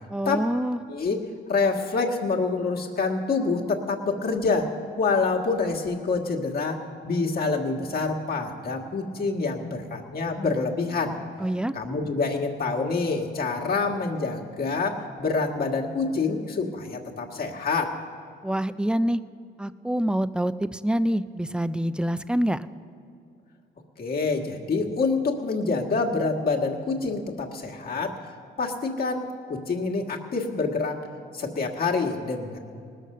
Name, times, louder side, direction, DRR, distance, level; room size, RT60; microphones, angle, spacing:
voice 1, 0.1-0.8 11.4-11.7 18.4-19.2 19.6-22.7, equal, 5° right, 14 dB, 0.4 m, -26 dB
voice 2, 1.5-4.7 5.0-11.2 11.7-18.0 24.0-28.3 28.6-31.0 31.3-32.6, left 4 dB, 50° left, 0 dB, 1.6 m, -27 dB
19.5 x 6.5 x 6.6 m, 2.3 s
cardioid pair, 90°, 20 cm